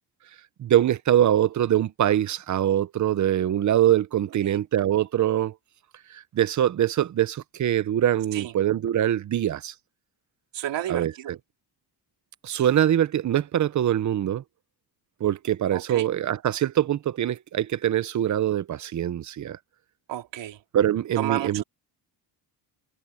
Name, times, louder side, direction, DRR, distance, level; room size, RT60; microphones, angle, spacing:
voice 1, 0.6-5.5 6.1-9.7 10.9-11.1 12.4-14.4 15.2-19.6 20.7-21.6, right 11 dB, 45° right, 0.7 m, -23 dB
voice 2, 10.5-11.3 15.7-16.1 20.1-20.6 21.2-21.6, right 12 dB, 85° right, 3.4 m, -31 dB
cardioid pair, 155°, 42 cm